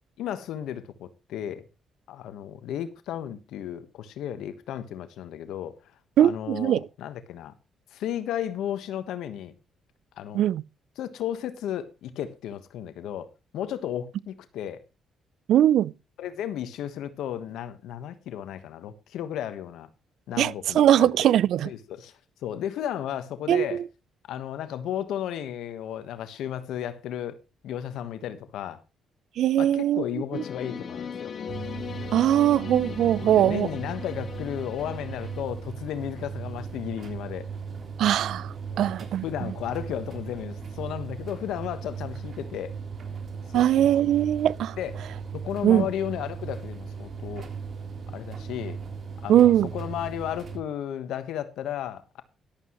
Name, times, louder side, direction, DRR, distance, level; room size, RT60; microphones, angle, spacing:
voice 1, 0.2-1.7 2.1-5.7 6.2-7.5 7.9-9.5 10.2-10.4 11.0-14.8 16.2-19.9 20.3-21.3 21.6-23.8 24.3-27.4 27.6-28.8 29.6-31.3 33.2-37.5 38.7-39.0 39.2-42.7 43.5-44.1 44.8-45.0 45.3-47.5 48.1-48.8 49.2-52.2, left 10 dB, 85° left, 1.2 m, -34 dB
voice 2, 6.2-6.8 10.3-10.6 15.5-15.9 20.4-21.7 23.5-23.6 29.4-30.0 30.3-30.4 32.1-33.7 38.0-38.5 38.8-39.2 43.5-44.7 45.6-45.8 49.3-49.7, right 11 dB, 75° right, 0.5 m, -20 dB
sound 1, 30.3-35.4, left 7 dB, 50° left, 1.4 m, -38 dB
sound 2, 31.5-50.6, right 5 dB, 50° right, 3.4 m, -37 dB
14.5 x 12.0 x 3.1 m
cardioid pair, 90°, 0 cm